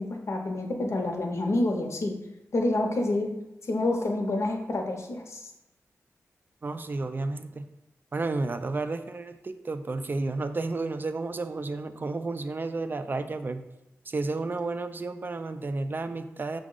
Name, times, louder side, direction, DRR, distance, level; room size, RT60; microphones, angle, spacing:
voice 1, 0.0-2.2 2.5-3.3 3.7-5.4, left 2 dB, 60° left, 3 dB, 0.7 m, -28 dB
voice 2, 6.6-7.7 8.1-13.7 14.1-16.6, right 3 dB, 40° right, 9 dB, 0.3 m, -32 dB
6.0 x 2.0 x 3.7 m, 0.94 s
cardioid pair, 65°, 5 cm